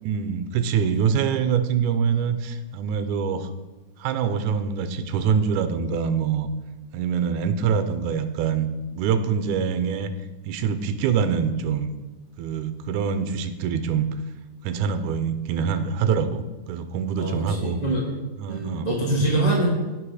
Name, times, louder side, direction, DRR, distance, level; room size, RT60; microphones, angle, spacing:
voice 1, 0.0-3.5 4.0-6.5 6.9-10.1 10.5-11.9 12.4-14.1 14.6-17.8 18.4-18.9 19.2-19.4, right 7 dB, 80° right, 10 dB, 2.2 m, -25 dB
voice 2, 17.2-18.1 18.5-19.7, right 2 dB, 15° right, -5 dB, 1.6 m, -24 dB
16.0 x 5.4 x 4.9 m, 1.2 s
omnidirectional pair, 3.5 m